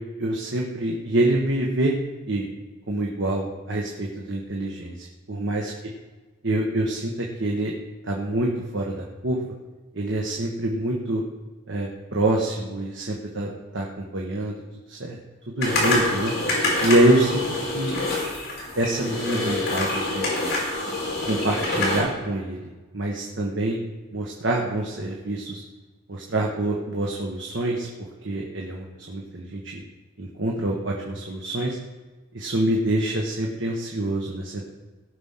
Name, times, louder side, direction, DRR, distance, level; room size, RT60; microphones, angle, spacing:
voice 1, 0.2-2.0 2.3-2.5 2.9-5.7 6.4-7.7 8.0-9.4 9.9-11.2 11.7-14.6 14.9-15.2 15.5-16.3 16.8-17.4 17.7-18.0 18.7-20.3 21.2-23.8 24.1-25.6 26.1-27.9 28.2-29.8 30.2-31.8 32.3-34.7, right 1 dB, 70° right, -1 dB, 1.4 m, -26 dB
sound 1, 15.6-22.0, left 2 dB, 55° left, 4.7 m, -26 dB
17.5 x 6.2 x 5.8 m, 1.2 s
head